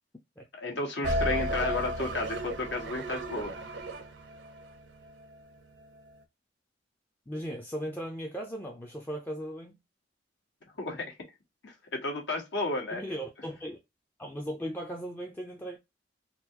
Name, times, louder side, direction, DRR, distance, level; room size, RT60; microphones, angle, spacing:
voice 1, 0.5-3.5 10.8-11.1 11.6-13.0, left 2 dB, 70° left, 1.3 m, -33 dB
sound 1, 1.0-5.3, equal, 75° right, 0.7 m, -33 dB
voice 2, 7.3-9.8 12.9-13.8 14.2-15.8, equal, 10° left, 0.5 m, -37 dB
3.9 x 2.4 x 2.8 m
head